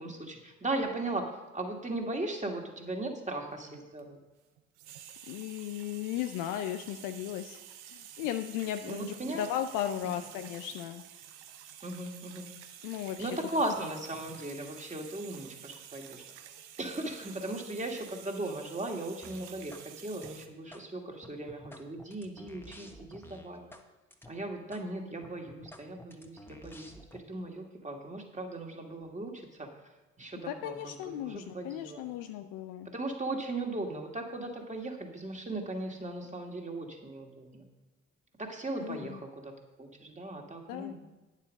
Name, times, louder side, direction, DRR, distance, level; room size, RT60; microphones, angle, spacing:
voice 1, 0.0-4.2 8.9-9.4 10.0-10.1 11.8-12.5 13.2-16.2 16.8-23.6 24.3-29.7 30.2-32.0 32.9-37.6 38.4-39.5 39.8-41.0, right 2 dB, 20° right, 2 dB, 2.2 m, -37 dB
sound 1, 3.5-4.3 4.6-20.5, right 10 dB, 85° right, 0.7 m, -50 dB
voice 2, 5.3-7.6 7.9-11.0 12.8-13.4 30.4-32.9 38.8-39.2 40.7-40.9, left 11 dB, 70° left, 7 dB, 0.6 m, -36 dB
sound 2, 19.2-19.9 20.1-20.8 21.2-23.8 24.1-24.3 24.7-24.8 25.2-27.2, left 1 dB, 5° left, 1.3 m, -51 dB
9.6 x 7.4 x 5.3 m, 1.1 s
hypercardioid pair, 45°, 33 cm